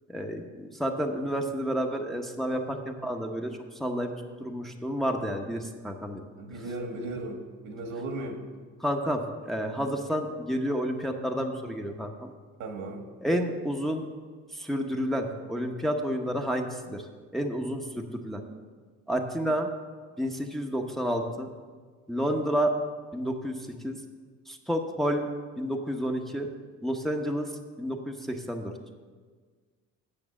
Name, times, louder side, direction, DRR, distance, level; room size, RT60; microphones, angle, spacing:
voice 1, 0.1-4.1 4.4-6.2 8.8-12.3 13.2-14.1 14.5-17.0 17.3-18.4 19.1-19.7 20.2-21.5 22.1-22.7 23.1-24.0 24.5-25.3 25.6-26.5 26.8-27.5 27.8-28.7, equal, ahead, 2 dB, 0.9 m, -30 dB
voice 2, 6.4-8.4 12.6-13.1, right 2 dB, 75° right, 3 dB, 1.6 m, -36 dB
8.7 x 6.0 x 7.1 m, 1.5 s
cardioid pair, 90°, 30 cm